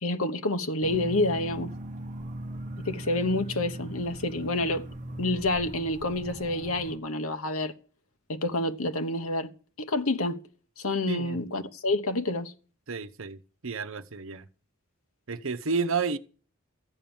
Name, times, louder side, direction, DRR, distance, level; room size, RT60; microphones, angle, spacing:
voice 1, 0.0-1.7 2.8-4.8 5.2-7.7 8.3-9.5 9.8-10.4 10.8-12.5, left 2 dB, 90° left, 1.1 m, -28 dB
sound 1, 0.8-7.0, right 1 dB, 35° right, 0.9 m, -39 dB
voice 2, 11.1-11.4 12.9-14.4 15.3-16.2, right 4 dB, 65° right, 0.9 m, -31 dB
14.0 x 9.1 x 7.1 m
head